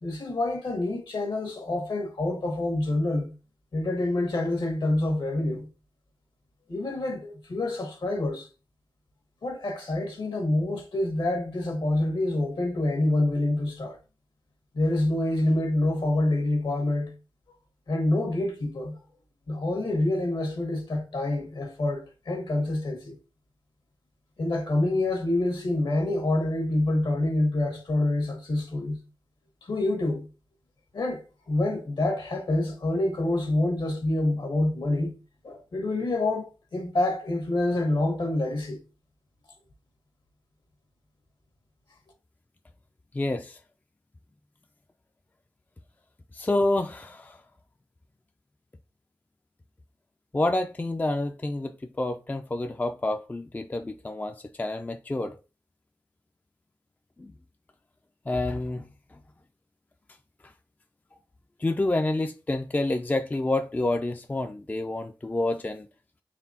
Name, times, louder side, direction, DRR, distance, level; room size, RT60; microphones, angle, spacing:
voice 1, 0.0-3.3 3.7-5.7 6.7-8.5 9.4-14.0 14.7-17.1 17.9-19.0 19.5-23.2 24.4-29.0 29.6-30.3 30.9-35.1 35.4-38.8, left 2 dB, 70° left, 1.4 m, -27 dB
voice 2, 43.1-43.6 46.3-47.4 50.3-55.4 57.2-57.3 58.3-58.9 61.6-65.9, left 2 dB, 20° left, 0.4 m, -28 dB
4.0 x 3.5 x 2.8 m
cardioid pair, 50°, 8 cm